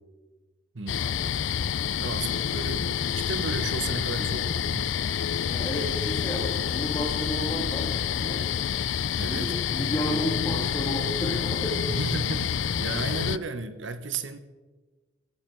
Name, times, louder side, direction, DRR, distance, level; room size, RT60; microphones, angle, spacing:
voice 1, 0.7-4.9 9.2-9.5 11.9-14.4, right 3 dB, 75° right, 11 dB, 1.1 m, -34 dB
sound 1, 0.9-13.4, left 8 dB, 75° left, 0.4 m, -28 dB
voice 2, 5.5-7.9 8.1-8.4 9.3-11.8, equal, 20° left, -5 dB, 2.4 m, -32 dB
16.5 x 15.0 x 4.7 m, 1.3 s
head